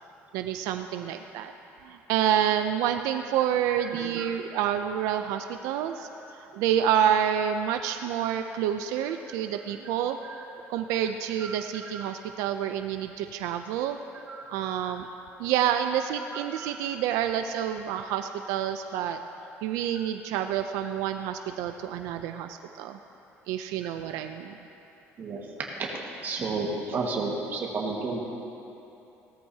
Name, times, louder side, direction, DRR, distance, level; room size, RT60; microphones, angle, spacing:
voice 1, 0.3-1.5 1.8-6.1 6.5-10.2 10.7-14.0 14.5-15.1 15.4-19.2 19.6-23.0 23.5-24.6 25.3-25.4, right 9 dB, 90° right, 7 dB, 0.4 m, -28 dB
voice 2, 3.8-4.3 6.0-6.1 10.2-10.4 11.4-11.6 11.9-12.1 14.3-14.6 14.8-14.9 16.3-16.7 19.9-20.0 25.2-25.4 26.2-28.2, right 3 dB, 35° right, -1 dB, 1.6 m, -33 dB
17.0 x 13.0 x 2.8 m, 2.9 s
cardioid pair, 165°, 5 cm